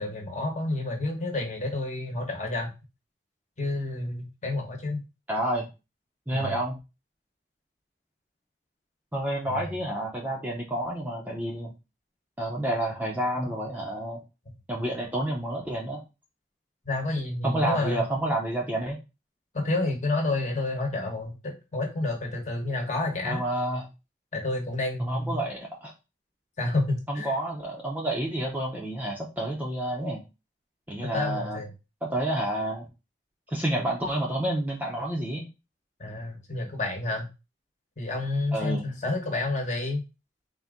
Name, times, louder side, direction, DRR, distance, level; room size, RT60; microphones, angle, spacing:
voice 1, 0.0-2.7 3.6-5.0 6.3-6.6 9.5-9.7 16.8-18.0 19.5-23.4 24.3-25.4 26.6-27.3 31.0-31.7 36.0-37.3 38.0-40.0, left 2 dB, 40° left, 1 dB, 1.1 m, -29 dB
voice 2, 5.3-5.7 6.3-6.8 9.1-11.7 12.4-14.2 14.7-16.0 17.4-19.0 23.2-23.8 25.0-25.9 27.1-30.2 30.9-31.6 32.0-32.9 33.5-35.5 38.5-38.9, right 1 dB, 10° right, -1 dB, 0.6 m, -29 dB
4.1 x 2.6 x 3.6 m, 0.28 s
head